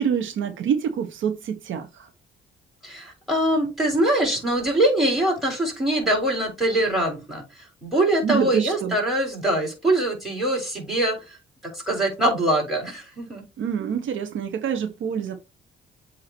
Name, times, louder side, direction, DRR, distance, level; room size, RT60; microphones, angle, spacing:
voice 1, 0.0-2.1 8.2-9.0 13.6-15.3, right 8 dB, 75° right, 0.9 m, -26 dB
voice 2, 2.8-7.4 7.8-11.2 11.7-13.4, right 1 dB, ahead, 4.0 m, -23 dB
7.8 x 2.8 x 4.4 m
cardioid pair, 90°, 20 cm